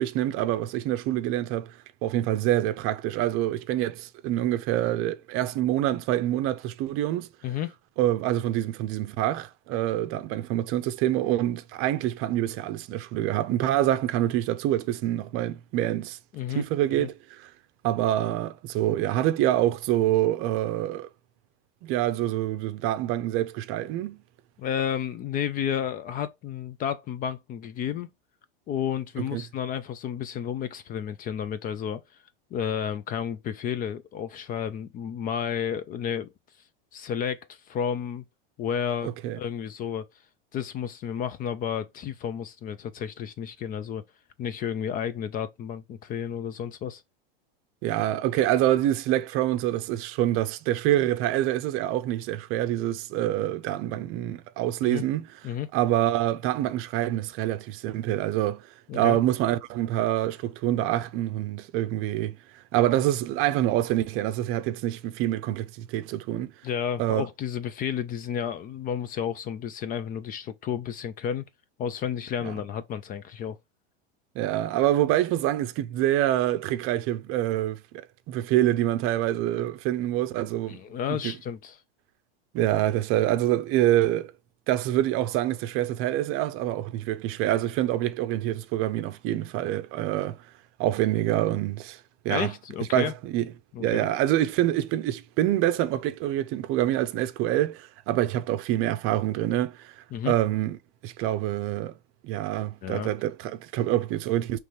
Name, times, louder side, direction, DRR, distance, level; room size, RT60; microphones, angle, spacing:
voice 1, 0.0-1.7 2.0-7.3 8.0-16.2 16.5-17.5 17.8-21.1 21.8-24.2 29.3-29.4 39.0-39.4 47.8-55.3 55.7-58.7 58.9-62.4 62.7-66.5 67.0-67.3 72.4-72.5 74.4-77.8 78.3-80.8 81.1-81.3 82.5-84.3 84.7-90.4 90.8-92.0 92.2-92.5 92.9-93.5 93.8-99.9 100.3-100.8 101.0-101.9 102.2-104.6, right 13 dB, 45° right, 0.6 m, -26 dB
voice 2, 16.3-16.6 16.9-17.1 24.6-28.1 28.7-32.0 32.5-36.3 36.9-38.2 38.6-40.1 40.5-44.0 44.4-47.0 54.8-55.0 55.4-55.7 58.9-59.2 66.6-71.4 71.8-73.6 80.7-81.8 92.3-93.1 93.7-94.1 100.1-100.3 102.8-103.1, left 8 dB, 30° left, 0.4 m, -31 dB
5.1 x 3.2 x 3.1 m
supercardioid pair, 120°, 30 cm